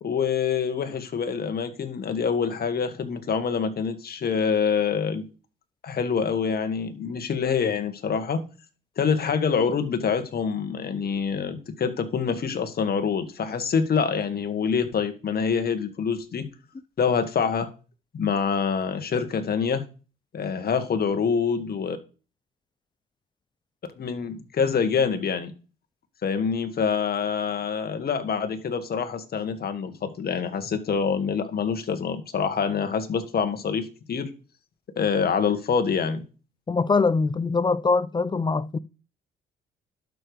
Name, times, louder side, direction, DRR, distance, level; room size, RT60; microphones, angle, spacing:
voice 1, 0.0-5.2 5.8-8.5 9.0-16.5 17.0-17.7 18.1-19.8 20.3-22.0 24.0-25.5 26.2-34.3 35.0-36.2, left 6 dB, 50° left, 1.8 m, -26 dB
voice 2, 36.7-38.8, left 4 dB, 20° left, 0.5 m, -23 dB
11.5 x 6.7 x 5.1 m
cardioid pair, 90°, 20 cm